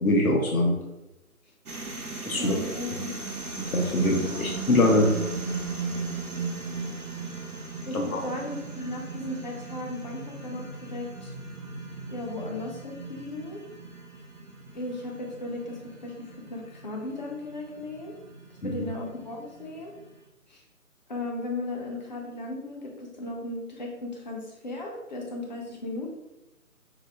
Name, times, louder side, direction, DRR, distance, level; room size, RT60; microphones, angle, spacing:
voice 1, 0.0-0.7 2.3-2.6 3.7-5.1 7.9-8.2 18.6-18.7, left 1 dB, 75° left, 1 dB, 1.0 m, -23 dB
sound 1, 1.7-20.1, right 4 dB, 80° right, 0.9 m, -37 dB
voice 2, 2.3-3.3 4.1-4.5 7.9-11.3 12.1-13.6 14.7-18.1 18.6-19.9 20.5-20.6 21.1-26.2, left 2 dB, 30° left, 0 dB, 0.7 m, -36 dB
5.1 x 2.1 x 3.6 m, 0.96 s
figure-of-eight pair, 150°, 43 cm